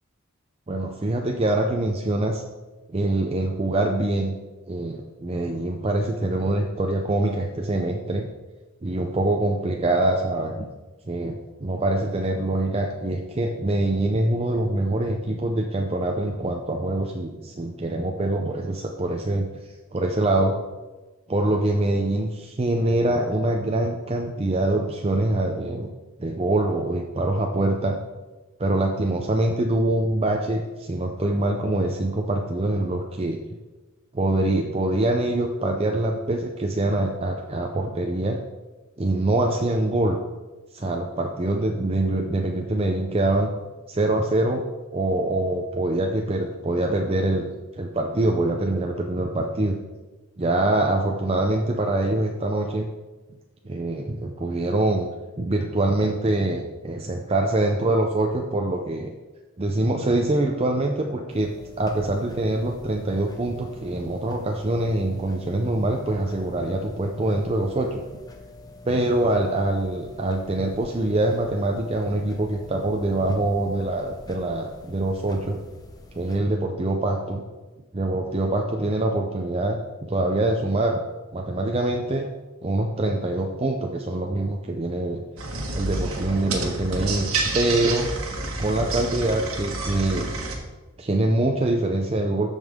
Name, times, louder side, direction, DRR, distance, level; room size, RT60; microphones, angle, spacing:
voice 1, 0.7-2.4 2.9-4.3 4.7-8.3 8.8-10.7 11.1-19.5 19.9-20.6 21.3-25.9 26.2-28.0 28.6-33.4 34.1-38.4 39.0-40.2 40.7-43.5 43.9-44.6 44.9-47.5 47.8-49.8 50.4-52.9 53.6-55.1 55.4-59.1 59.6-61.5 61.8-68.0 68.8-75.6 76.1-77.4 77.9-79.8 80.1-81.0 81.3-82.3 82.6-85.2 85.7-88.1 88.6-90.3 91.0-92.5, right 2 dB, 25° right, 2 dB, 0.5 m, -24 dB
sound 1, 61.3-76.4, left 1 dB, 15° left, 0.8 m, -45 dB
sound 2, 85.4-90.6, right 2 dB, 70° right, 1.5 m, -29 dB
13.5 x 5.4 x 3.6 m, 1.2 s
head